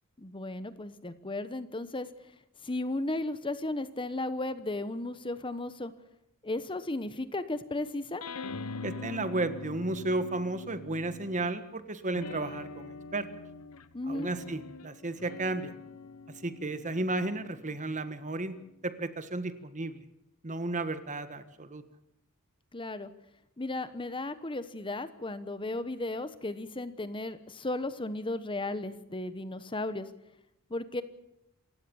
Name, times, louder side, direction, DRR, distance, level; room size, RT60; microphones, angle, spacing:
voice 1, 0.2-2.1 2.6-5.9 6.4-8.2 13.9-14.3 22.7-23.1 23.6-30.1 30.7-31.0, left 2 dB, 25° left, 12 dB, 1.1 m, -35 dB
sound 1, 8.2-11.6 12.1-18.9, left 3 dB, 85° left, 1.1 m, -44 dB
voice 2, 8.8-13.3 14.1-15.7 16.4-18.5 18.8-20.0 20.4-21.8, right 2 dB, 35° right, 11 dB, 1.6 m, -33 dB
28.0 x 16.0 x 7.1 m, 0.83 s
head